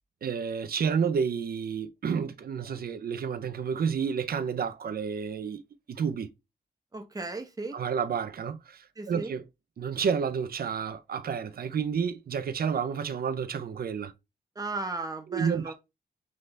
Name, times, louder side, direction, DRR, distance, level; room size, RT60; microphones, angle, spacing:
voice 1, 0.2-5.6 5.9-6.3 7.7-9.4 9.8-14.1 15.3-15.7, right 6 dB, 70° right, 0.7 m, -30 dB
voice 2, 6.9-7.8 9.0-9.3 14.5-15.7, right 3 dB, 25° right, 1.0 m, -35 dB
3.9 x 3.8 x 3.3 m
wide cardioid pair, 110°, 16 cm